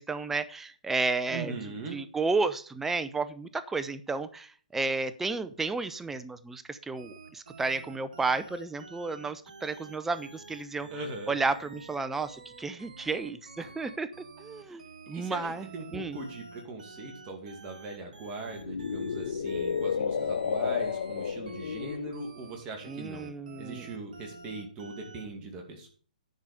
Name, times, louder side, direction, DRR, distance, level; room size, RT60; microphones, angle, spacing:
voice 1, 0.0-1.5 1.9-10.9 11.3-16.2 22.9-23.9, right 3 dB, 5° right, 12 dB, 0.6 m, -32 dB
voice 2, 1.3-2.0 10.9-11.4 13.6-13.7 14.6-14.8 15.1-23.3 23.6-25.9, right 3 dB, 25° right, 3 dB, 2.4 m, -40 dB
sound 1, 7.0-25.3, right 4 dB, 70° right, 2.2 m, -49 dB
sound 2, 15.4-15.5 18.4-22.2, left 6 dB, 70° left, 1.0 m, -31 dB
10.5 x 4.9 x 6.9 m, 0.43 s
hypercardioid pair, 140°, 4 cm